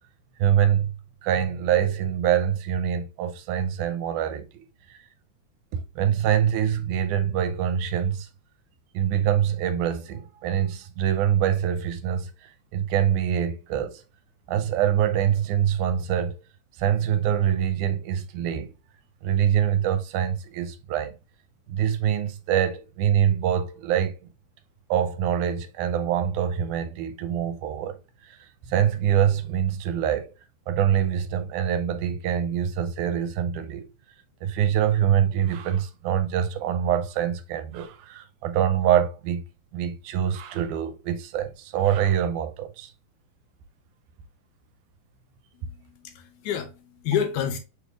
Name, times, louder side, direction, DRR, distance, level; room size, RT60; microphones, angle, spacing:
voice 1, 0.4-0.9 1.2-5.0 5.7-8.3 8.9-14.0 14.5-16.4 16.8-18.7 19.2-21.2 21.7-24.2 24.9-28.4 28.7-30.3 30.7-33.9 34.4-39.4 39.7-42.9, right 9 dB, 80° right, 2.0 m, -25 dB
voice 2, 45.5-47.6, left 8 dB, 80° left, 2.2 m, -29 dB
6.1 x 3.3 x 2.4 m
omnidirectional pair, 3.6 m